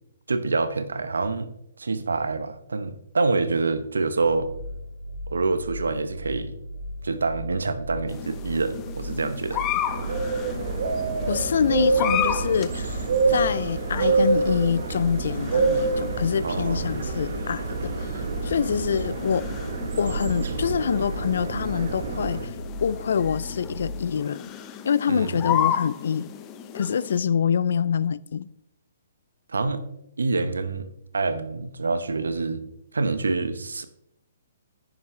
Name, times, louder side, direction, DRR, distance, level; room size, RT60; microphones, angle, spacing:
voice 1, 0.3-1.5 1.8-4.5 5.3-6.5 7.0-9.6 16.4-16.9 25.1-25.4 29.5-29.8 30.2-30.9 31.1-32.6 32.9-33.8, right 3 dB, 80° right, 1.0 m, -26 dB
sound 1, 4.2-24.1, left 1 dB, 85° left, 1.7 m, -37 dB
sound 2, 8.1-27.2, left 10 dB, 25° left, 1.0 m, -34 dB
sound 3, 9.9-22.5, right 4 dB, 65° right, 1.3 m, -27 dB
voice 2, 11.3-18.1 18.4-19.4 20.0-22.5 22.8-24.4 24.8-26.3 26.7-28.5, left 7 dB, 65° left, 0.4 m, -25 dB
10.0 x 9.9 x 3.3 m
hypercardioid pair, 130°, 0 cm